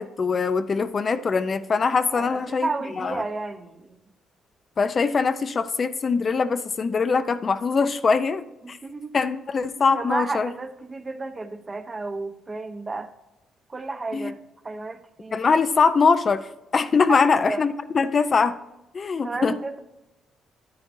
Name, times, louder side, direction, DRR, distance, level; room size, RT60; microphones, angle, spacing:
voice 1, 0.0-2.7 3.0-3.2 4.8-8.8 9.1-10.5 14.1-14.3 15.3-16.4 16.7-18.6 18.9-19.5, left 5 dB, 40° left, 11 dB, 0.5 m, -22 dB
voice 2, 2.1-4.0 8.6-9.1 9.9-13.1 13.7-15.4 17.1-17.6 19.2-19.8, right 3 dB, 25° right, 8 dB, 0.9 m, -32 dB
9.7 x 9.6 x 2.7 m, 0.96 s
cardioid pair, 90°, 0 cm